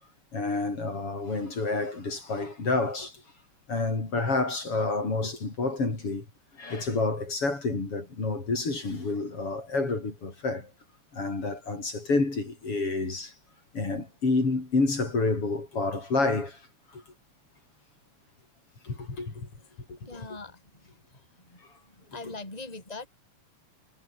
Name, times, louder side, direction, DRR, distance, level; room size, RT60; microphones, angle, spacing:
voice 1, 0.3-3.2 3.7-6.3 6.6-10.7 11.1-13.3 13.7-16.6 16.9-17.0 18.8-19.5 19.9-20.0, left 3 dB, 50° left, 6.4 m, -29 dB
voice 2, 20.0-20.7 21.1-21.6 21.9-23.1, left 3 dB, 10° left, 4.9 m, -42 dB
omnidirectional pair, 3.3 m